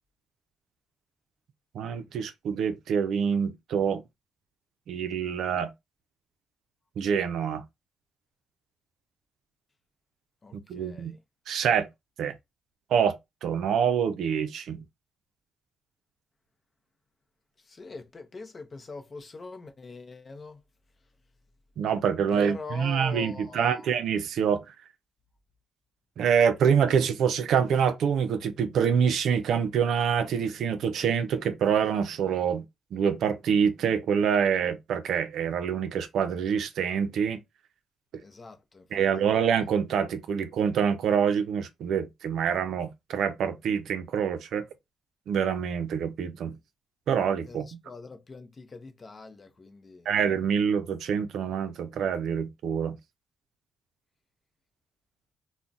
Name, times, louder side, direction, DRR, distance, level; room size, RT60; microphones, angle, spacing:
voice 1, 1.7-4.0 4.9-5.7 7.0-7.6 10.5-11.2 11.5-11.9 12.2-12.3 12.9-13.2 13.4-14.8 21.8-24.7 26.2-32.6 32.9-37.4 38.9-44.6 45.3-46.6 47.1-47.6 50.1-53.0, right 7 dB, 70° right, 0.4 m, -26 dB
voice 2, 10.4-11.2 17.7-20.6 22.3-23.9 38.2-39.3 47.5-50.2, left 3 dB, 35° left, 0.6 m, -43 dB
2.3 x 2.1 x 3.8 m
cardioid pair, 90°, 0 cm